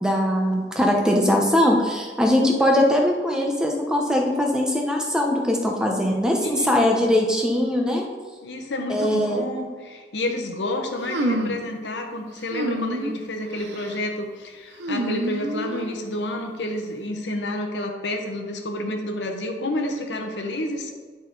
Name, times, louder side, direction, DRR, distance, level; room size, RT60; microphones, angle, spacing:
voice 1, 0.0-8.1 8.9-9.4, left 1 dB, 5° right, 0 dB, 0.7 m, -21 dB
voice 2, 6.4-6.9 8.4-20.9, left 1 dB, 75° left, 3 dB, 0.9 m, -29 dB
sound 1, 11.1-11.7 12.5-13.2 13.6-14.0 14.8-16.0, right 1 dB, 80° right, 0.7 m, -28 dB
9.9 x 4.3 x 3.9 m, 1.5 s
head